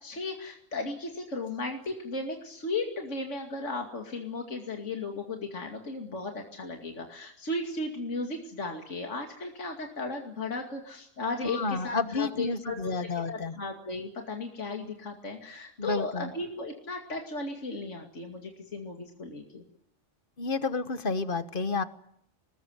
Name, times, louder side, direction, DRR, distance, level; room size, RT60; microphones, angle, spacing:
voice 1, 0.0-19.6, left 3 dB, 65° left, 2 dB, 2.8 m, -35 dB
voice 2, 11.4-13.5 15.8-16.3 20.4-21.8, left 4 dB, 40° left, 11 dB, 1.5 m, -30 dB
25.5 x 20.0 x 9.7 m, 0.73 s
omnidirectional pair, 1.3 m